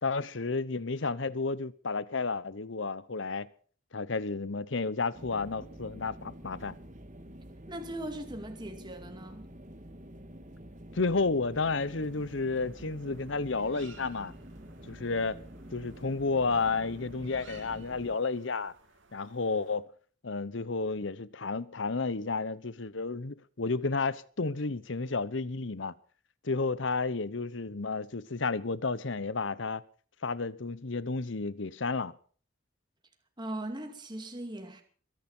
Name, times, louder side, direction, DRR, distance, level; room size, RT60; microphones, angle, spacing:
voice 1, 0.0-3.5 3.9-6.7 10.9-14.3 14.9-15.4 15.7-18.7 19.1-19.9 20.2-25.9 26.4-29.8 30.2-32.1, left 4 dB, 60° left, 0.9 m, -31 dB
sound 1, 5.1-18.2, equal, 40° right, 1.8 m, -48 dB
voice 2, 7.7-9.5 33.4-34.8, right 1 dB, 20° right, 2.4 m, -39 dB
sound 2, 11.6-19.8, right 5 dB, 65° right, 3.1 m, -59 dB
22.5 x 10.5 x 5.6 m
head